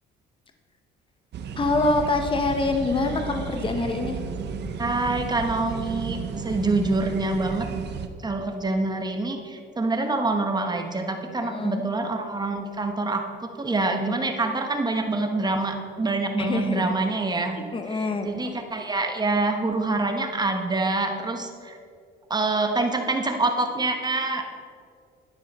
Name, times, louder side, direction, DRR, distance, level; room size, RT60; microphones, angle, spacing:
sound 1, 1.3-8.1, right 5 dB, 60° right, 0.8 m, -33 dB
voice 1, 1.6-4.2 11.4-11.8 16.4-16.9 17.6-18.3, left 3 dB, 25° left, 5 dB, 1.0 m, -25 dB
voice 2, 4.8-7.7 8.2-13.2 13.6-17.6 17.9-21.8 22.3-24.6, right 2 dB, 20° right, 5 dB, 1.2 m, -26 dB
11.0 x 9.7 x 4.2 m, 2.3 s
cardioid pair, 105°, 20 cm